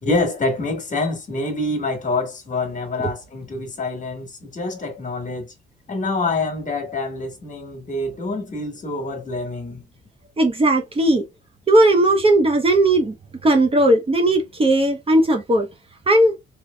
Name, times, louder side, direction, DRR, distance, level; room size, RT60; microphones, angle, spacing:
voice 1, 0.0-5.5 5.9-9.9, left 2 dB, 40° left, 1.5 m, -26 dB
voice 2, 10.4-11.2 11.7-13.1 13.4-15.7 16.1-16.3, right 1 dB, 30° right, 0.8 m, -17 dB
3.3 x 3.0 x 2.2 m
cardioid pair, 90°, 20 cm